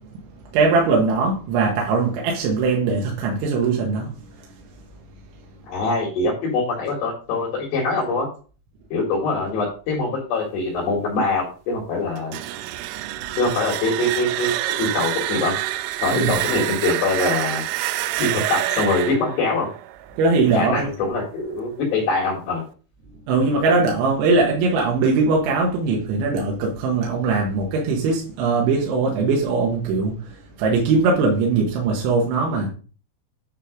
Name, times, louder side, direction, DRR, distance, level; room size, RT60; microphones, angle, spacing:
voice 1, 0.5-4.1 16.1-16.4 20.2-20.9 23.3-32.7, right 4 dB, 75° right, 3.7 m, -20 dB
voice 2, 5.7-8.3 8.9-12.4 13.4-15.5 16.0-17.6 18.2-19.7 20.5-22.6, left 3 dB, 65° left, 3.6 m, -23 dB
sound 1, 12.2-21.0, right 15 dB, 90° right, 3.2 m, -27 dB
10.0 x 3.9 x 5.1 m
omnidirectional pair, 5.6 m